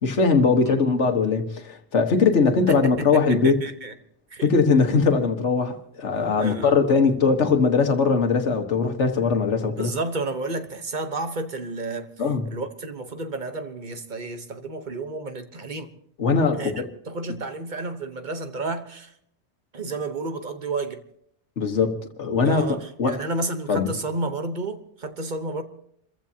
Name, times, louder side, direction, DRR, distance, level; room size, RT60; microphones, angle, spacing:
voice 1, 0.0-3.6 4.4-9.9 12.2-12.5 16.2-16.9 21.6-22.7 23.0-23.2 23.7-23.9, left 4 dB, 85° left, 1.7 m, -21 dB
voice 2, 2.7-3.9 4.3-4.5 6.4-6.7 9.8-12.1 12.5-15.9 16.5-16.7 17.1-19.1 19.7-21.0 22.4-25.6, right 2 dB, 45° right, 1.2 m, -31 dB
28.0 x 15.0 x 2.8 m
omnidirectional pair, 1.2 m